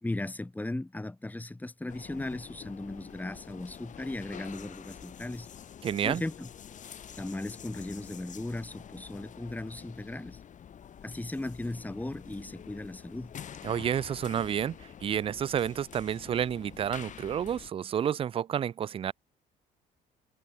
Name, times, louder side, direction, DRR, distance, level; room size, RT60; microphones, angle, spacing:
voice 1, 0.0-5.5 6.0-6.5 7.2-10.4 11.0-13.3, left 2 dB, 10° left, 3.0 m, -37 dB
sound 1, 1.9-17.7, left 9 dB, 45° left, 3.5 m, -47 dB
voice 2, 5.8-6.2 13.6-19.1, right 9 dB, 35° right, 0.4 m, -30 dB
cardioid pair, 110°, 17 cm